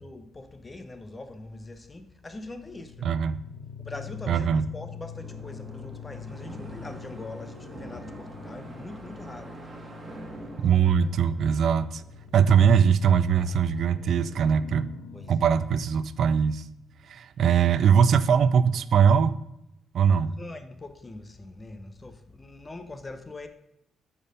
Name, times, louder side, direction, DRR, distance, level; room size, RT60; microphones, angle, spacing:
voice 1, 0.0-3.1 3.8-9.9 15.1-15.5 20.2-23.5, left 2 dB, 25° left, 0.7 m, -42 dB
sound 1, 2.5-17.1, left 8 dB, 75° left, 0.7 m, -45 dB
voice 2, 3.0-3.4 4.3-4.6 10.6-12.0 12.3-14.9 15.3-16.6 17.1-19.4 19.9-20.3, right 7 dB, 65° right, 0.4 m, -21 dB
sound 2, 3.9-12.7, right 1 dB, 25° right, 1.8 m, -45 dB
8.7 x 4.4 x 5.2 m
cardioid pair, 90°, 0 cm